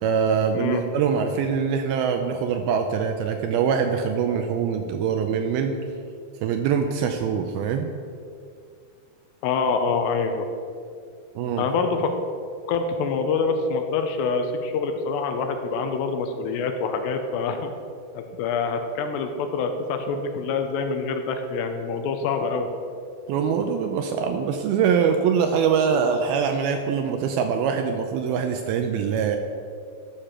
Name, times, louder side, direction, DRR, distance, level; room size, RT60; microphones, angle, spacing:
voice 1, 0.0-5.8 6.4-7.9 11.4-11.6 23.3-29.4, right 6 dB, 85° right, 5 dB, 2.2 m, -23 dB
voice 2, 9.4-10.5 11.6-12.1 12.7-17.7 18.1-22.7, left 4 dB, 85° left, 5 dB, 2.9 m, -26 dB
14.0 x 6.7 x 5.9 m, 2.3 s
omnidirectional pair, 5.1 m